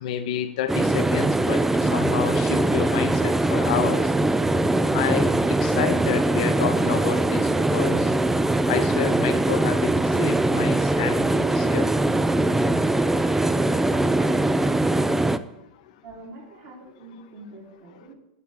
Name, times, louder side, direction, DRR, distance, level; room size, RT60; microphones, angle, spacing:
voice 1, 0.0-1.6 1.9-4.1 4.9-8.1 8.7-9.9 10.2-11.9, left 10 dB, 65° left, 9 dB, 0.8 m, -29 dB
sound 1, 0.7-15.4, right 2 dB, 5° right, 0.3 m, -22 dB
voice 2, 16.0-18.1, right 2 dB, 55° right, -5 dB, 2.9 m, -44 dB
9.6 x 3.6 x 6.5 m, 0.90 s
hypercardioid pair, 95°, 4 cm